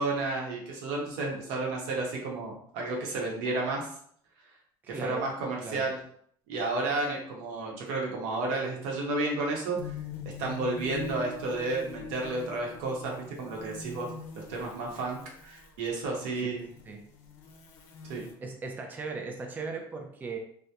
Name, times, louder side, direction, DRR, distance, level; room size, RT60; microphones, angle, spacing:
voice 1, 0.0-3.9 5.0-6.0 6.5-9.9 10.4-14.1 14.4-16.6 18.0-18.3, right 2 dB, 85° right, -1 dB, 0.8 m, -32 dB
voice 2, 4.8-5.3 5.6-5.9 16.4-16.5 16.8-17.0 18.4-20.4, right 4 dB, 20° right, 3 dB, 0.3 m, -38 dB
sound 1, 9.8-15.9 16.5-18.3, left 5 dB, 85° left, 0.5 m, -43 dB
2.7 x 2.1 x 2.2 m, 0.62 s
cardioid pair, 120°, 10 cm